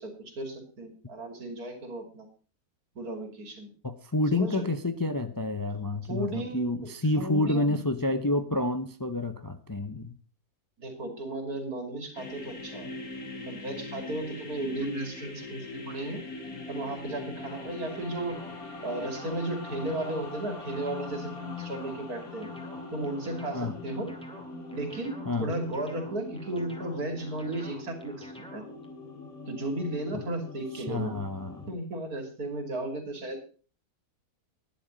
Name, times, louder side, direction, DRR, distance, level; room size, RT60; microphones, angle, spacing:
voice 1, 0.0-2.3 2.9-3.7 4.3-4.7 6.1-6.7 7.2-7.8 10.8-12.9 13.5-16.2 16.7-18.4 18.8-22.5 22.9-24.1 24.7-28.6 29.5-31.1 31.7-33.4, right 2 dB, 80° right, 5 dB, 3.4 m, -34 dB
voice 2, 3.8-10.1 23.5-23.8 25.3-25.5 30.1-30.2 30.7-31.7, left 2 dB, 25° left, 9 dB, 0.5 m, -29 dB
sound 1, 12.1-31.7, left 3 dB, 70° left, 2.5 m, -42 dB
sound 2, 17.4-28.9, equal, 5° left, 2.1 m, -49 dB
12.0 x 10.5 x 5.3 m, 0.38 s
omnidirectional pair, 1.6 m